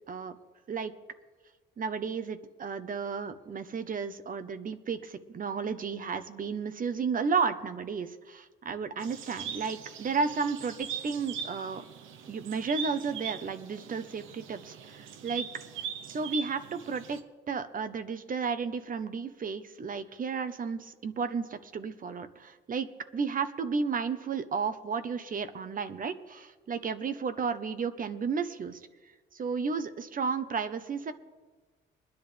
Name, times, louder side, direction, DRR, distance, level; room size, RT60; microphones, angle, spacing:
voice 1, 1.8-11.8 12.3-15.5 15.8-17.2 17.5-22.9 23.1-28.8 29.3-31.1, right 5 dB, 45° right, 11 dB, 1.0 m, -33 dB
sound 1, 9.0-17.2, right 7 dB, 85° right, 1.0 m, -41 dB
22.0 x 10.5 x 3.4 m, 1.3 s
cardioid pair, 90°, 20 cm